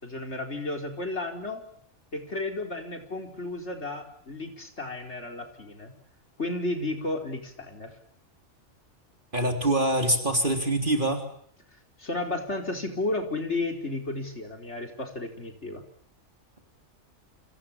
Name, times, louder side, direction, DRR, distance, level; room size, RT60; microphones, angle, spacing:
voice 1, 0.0-1.6 2.1-5.9 6.4-7.9 12.0-15.8, left 2 dB, 60° left, 4 dB, 4.8 m, -33 dB
voice 2, 9.3-11.2, right 1 dB, 40° right, 5 dB, 3.8 m, -24 dB
29.5 x 27.0 x 7.4 m, 0.64 s
omnidirectional pair, 1.3 m